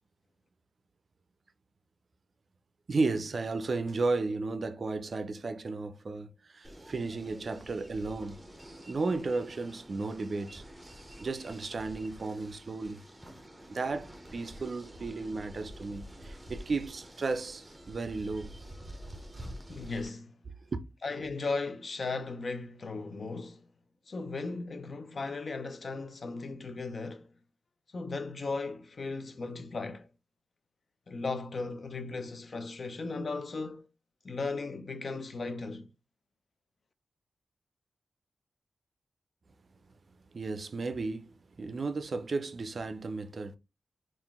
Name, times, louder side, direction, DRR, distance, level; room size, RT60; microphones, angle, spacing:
voice 1, 2.9-8.5 8.9-10.6 11.2-13.0 13.7-18.5 20.7-20.8 40.3-43.6, right 3 dB, 50° right, 0.4 m, -34 dB
sound 1, 6.6-20.1, equal, 15° right, 0.7 m, -48 dB
voice 2, 19.7-20.4 21.0-23.7 24.1-27.3 27.9-30.1 31.1-33.9 34.2-35.9, left 3 dB, 50° left, 0.5 m, -36 dB
3.8 x 2.4 x 3.5 m
wide cardioid pair, 110°, 0 cm